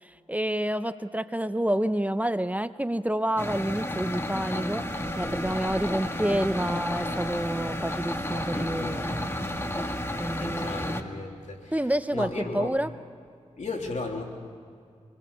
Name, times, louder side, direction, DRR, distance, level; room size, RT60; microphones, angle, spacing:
voice 1, 0.0-4.9 5.2-9.3 10.2-11.0 11.7-12.9, right 1 dB, 10° right, 11 dB, 0.8 m, -28 dB
sound 1, 3.4-11.0, left 1 dB, 20° left, 1.8 m, -32 dB
sound 2, 4.9-10.7, right 5 dB, 70° right, 0.7 m, -46 dB
voice 2, 8.5-9.5 10.4-12.8 13.6-14.2, left 3 dB, 75° left, 1 dB, 3.2 m, -36 dB
26.0 x 20.5 x 7.0 m, 2.3 s
cardioid pair, 50°, 12 cm